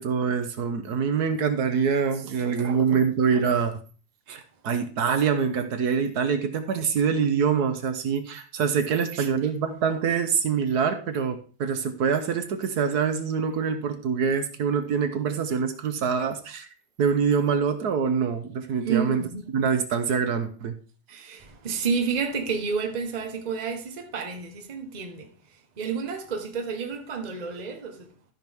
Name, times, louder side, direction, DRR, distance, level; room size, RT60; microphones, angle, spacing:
voice 1, 0.0-3.7 4.3-16.7 17.0-19.2 19.5-20.7, right 6 dB, 75° right, 1.5 m, -25 dB
voice 2, 2.1-3.0 8.9-9.3 18.8-19.5 21.1-28.1, right 5 dB, 30° right, 1.0 m, -31 dB
13.0 x 6.0 x 3.5 m
omnidirectional pair, 1.7 m